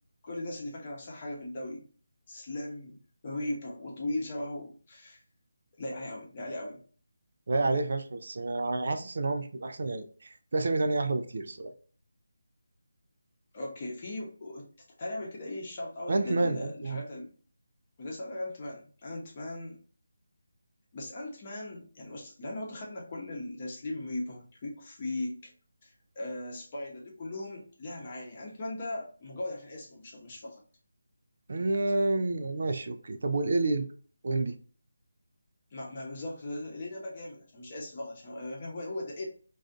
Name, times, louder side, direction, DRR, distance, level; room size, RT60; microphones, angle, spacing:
voice 1, 0.2-1.9 2.3-5.2 5.8-6.8 13.5-14.7 15.0-17.3 18.0-19.8 20.9-25.5 25.8-30.6 35.7-39.3, left 1 dB, 35° left, -2 dB, 0.8 m, -38 dB
voice 2, 7.5-11.7 16.1-17.0 31.5-33.9 34.2-34.5, right 2 dB, 55° right, 7 dB, 0.3 m, -29 dB
2.4 x 2.3 x 2.3 m, 0.42 s
figure-of-eight pair, 160°, 0 cm